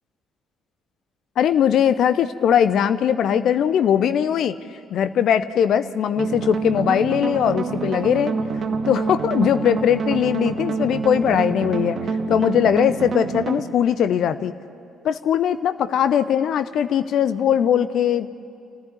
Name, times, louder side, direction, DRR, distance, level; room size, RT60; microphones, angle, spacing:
voice 1, 1.4-4.6 4.9-8.3 8.9-14.5 15.0-18.3, left 9 dB, 55° left, 13 dB, 0.7 m, -20 dB
sound 1, 6.2-13.6, right 5 dB, 45° right, 1.4 m, -27 dB
28.5 x 15.0 x 9.2 m, 2.5 s
figure-of-eight pair, 45°, 0 cm